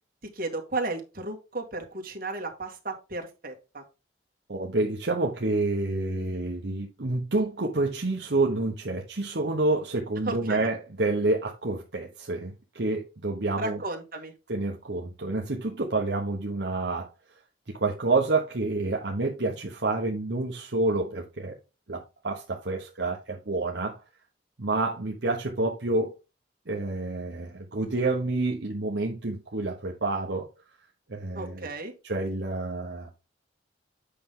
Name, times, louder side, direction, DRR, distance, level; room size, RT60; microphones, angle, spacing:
voice 1, 0.3-3.8 10.3-10.7 13.6-14.3 31.3-31.9, right 2 dB, 50° right, 2.0 m, -34 dB
voice 2, 4.5-13.8 14.5-17.1 17.7-21.6 21.9-24.0 24.6-26.2 26.7-30.5 31.1-31.7 32.0-33.1, right 2 dB, 65° right, 1.0 m, -28 dB
8.5 x 5.7 x 3.7 m
head